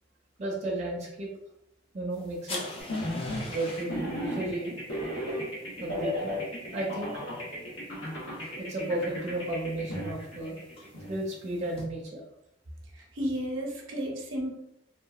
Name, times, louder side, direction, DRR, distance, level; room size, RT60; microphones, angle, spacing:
voice 1, 0.4-1.3 1.9-2.6 3.5-4.8 5.8-6.4 6.7-7.1 8.6-10.6 11.1-12.2, right 1 dB, 35° right, -3 dB, 0.5 m, -33 dB
sound 1, 2.1-11.8, left 2 dB, 30° left, 0.4 m, -47 dB
sound 2, 2.8-11.1, left 1 dB, 85° left, 1.1 m, -35 dB
voice 2, 13.0-14.5, equal, 80° right, 0 dB, 0.7 m, -33 dB
2.8 x 2.3 x 2.3 m, 0.79 s
head